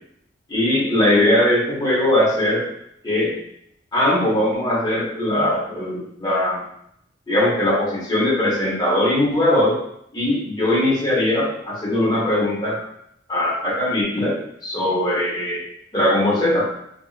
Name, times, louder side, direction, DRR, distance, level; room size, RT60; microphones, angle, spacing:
voice 1, 0.5-2.6 3.0-3.3 3.9-6.6 7.3-9.8 10.1-12.8 13.3-15.6 15.9-16.7, left 1 dB, 20° left, -6 dB, 1.0 m, -20 dB
2.8 x 2.6 x 2.4 m, 0.74 s
head